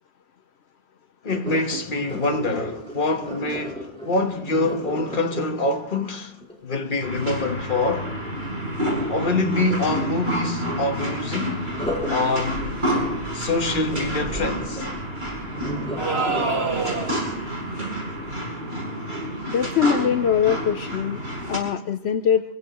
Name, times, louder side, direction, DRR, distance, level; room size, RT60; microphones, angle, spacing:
voice 1, 1.2-6.4 6.6-8.1 9.1-11.7 12.1-12.7 13.3-14.9 17.8-17.9, left 2 dB, 50° left, 1.5 m, -25 dB
Sink (filling or washing), 1.3-7.3 11.6-18.7 19.2-19.5 20.0-20.1, left 1 dB, 5° left, 4.5 m, -36 dB
sound 1, 7.0-21.6, equal, 45° right, 6.4 m, -29 dB
sound 2, 16.0-17.3, right 3 dB, 75° right, 2.3 m, -25 dB
voice 2, 19.5-22.4, left 8 dB, 75° left, 1.0 m, -22 dB
26.0 x 16.5 x 3.1 m
omnidirectional pair, 1.1 m